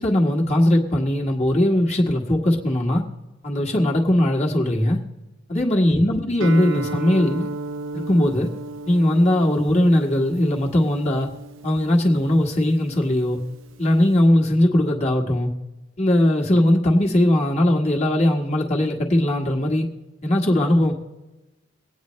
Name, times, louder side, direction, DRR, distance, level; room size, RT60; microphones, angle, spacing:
voice 1, 0.0-3.0 3.4-5.0 5.5-7.5 7.9-8.5 8.9-11.3 11.6-13.4 13.8-15.5 16.0-19.8 20.2-20.9, left 1 dB, 30° left, -1 dB, 1.5 m, -19 dB
Guitar, 6.4-14.2, right 2 dB, 70° right, 0.7 m, -35 dB
23.0 x 9.0 x 3.1 m, 1.1 s
head